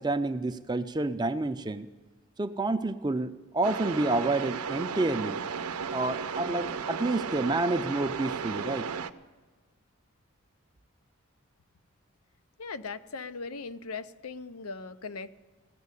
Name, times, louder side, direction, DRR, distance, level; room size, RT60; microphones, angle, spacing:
voice 1, 0.0-1.9 2.4-5.4 5.9-8.9, right 2 dB, 20° right, 10 dB, 0.5 m, -29 dB
sound 1, 3.6-9.1, right 6 dB, 90° right, 0.6 m, -34 dB
voice 2, 12.6-15.3, left 4 dB, 85° left, 13 dB, 0.6 m, -39 dB
16.0 x 7.4 x 9.7 m, 1.3 s
head